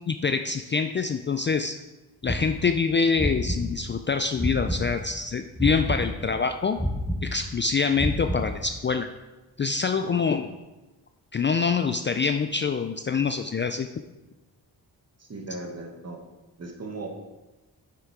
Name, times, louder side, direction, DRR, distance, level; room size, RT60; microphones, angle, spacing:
voice 1, 0.1-1.7 2.2-6.8 7.2-9.1 9.6-10.5 11.3-13.9, left 5 dB, 30° left, 8 dB, 0.4 m, -25 dB
sound 1, 2.2-5.2 5.6-8.9, equal, ahead, 1.2 m, -30 dB
voice 2, 10.0-10.4 15.2-16.2 16.6-17.1, right 2 dB, 40° right, 2 dB, 1.6 m, -37 dB
5.8 x 5.8 x 4.7 m, 1.1 s
cardioid pair, 55°, 40 cm